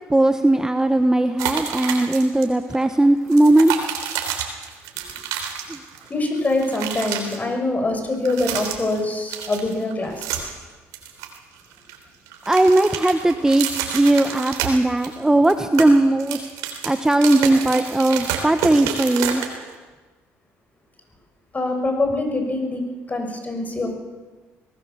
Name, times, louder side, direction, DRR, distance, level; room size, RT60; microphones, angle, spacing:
voice 1, 0.1-3.7 5.7-5.8 12.5-16.5 16.8-19.4, right 1 dB, 10° right, 9 dB, 1.1 m, -18 dB
sound 1, 1.4-2.4 2.7-2.9 3.3-6.1 6.3-7.4 8.1-9.0 9.3-10.6 10.9-12.0 12.3-15.1 15.4-19.7, right 8 dB, 85° right, 3.5 m, -29 dB
voice 2, 6.1-10.5 21.5-23.9, left 2 dB, 30° left, 4 dB, 6.3 m, -24 dB
22.5 x 19.0 x 7.0 m, 1.3 s
supercardioid pair, 75°, 6 cm